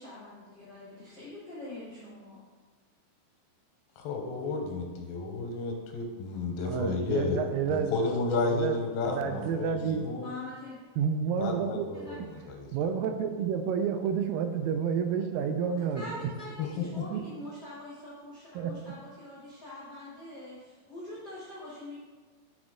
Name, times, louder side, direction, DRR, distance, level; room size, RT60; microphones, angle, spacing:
voice 1, 0.0-2.4 10.2-10.8 11.9-12.2 15.8-22.0, left 1 dB, 70° left, -8 dB, 0.9 m, -44 dB
voice 2, 4.0-7.4 7.7-10.3 11.4-12.7 16.6-17.0, left 3 dB, 85° left, 2 dB, 2.6 m, -32 dB
voice 3, 6.7-7.9 8.5-8.8 9.1-10.1 11.0-11.9 12.7-16.0 17.1-17.2 18.6-18.8, right 7 dB, 85° right, 7 dB, 2.2 m, -30 dB
5.8 x 4.2 x 4.8 m, 1.4 s
omnidirectional pair, 4.0 m